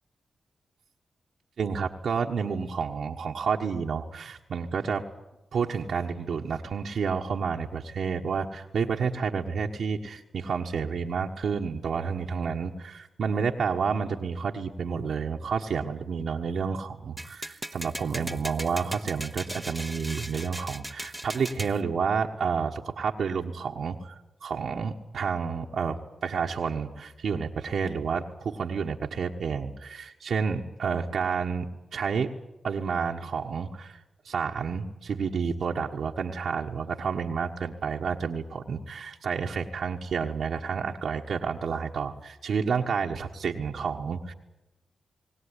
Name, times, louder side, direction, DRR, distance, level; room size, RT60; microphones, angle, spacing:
voice 1, 1.6-5.0 5.5-24.1 24.4-31.6 31.9-32.3 32.6-34.0 34.2-44.3, right 6 dB, 75° right, 1 dB, 1.4 m, -30 dB
sound 1, 17.2-21.8, right 1 dB, 10° right, 1.2 m, -38 dB
21.0 x 17.5 x 9.9 m, 0.93 s
supercardioid pair, 45°, 0 cm